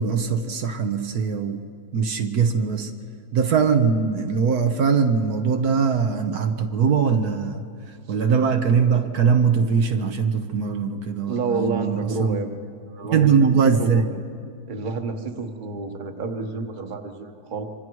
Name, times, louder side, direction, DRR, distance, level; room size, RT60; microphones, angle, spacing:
voice 1, 0.0-1.6 1.9-2.9 3.3-7.6 8.1-12.4 13.1-14.1, right 6 dB, 70° right, 6 dB, 1.5 m, -21 dB
voice 2, 11.3-12.5 12.9-13.3 13.6-14.0 14.7-17.6, right 3 dB, 30° right, 5 dB, 1.3 m, -29 dB
26.5 x 25.5 x 4.7 m, 2.2 s
omnidirectional pair, 1.7 m